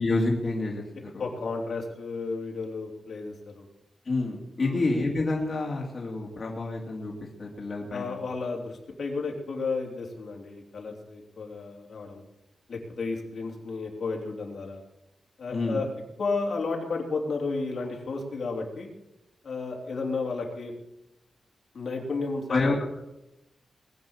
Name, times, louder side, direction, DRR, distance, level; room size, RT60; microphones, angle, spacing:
voice 1, 0.0-1.2 4.0-8.2 15.5-15.8 22.5-22.8, left 2 dB, 40° left, -2 dB, 2.7 m, -28 dB
voice 2, 1.2-3.6 4.6-4.8 7.9-12.2 12.7-14.8 15.4-15.9 16.2-18.9 19.4-20.7 21.7-22.8, left 4 dB, 60° left, 0 dB, 3.2 m, -32 dB
20.5 x 8.7 x 7.2 m, 0.90 s
wide cardioid pair, 160°, 0 cm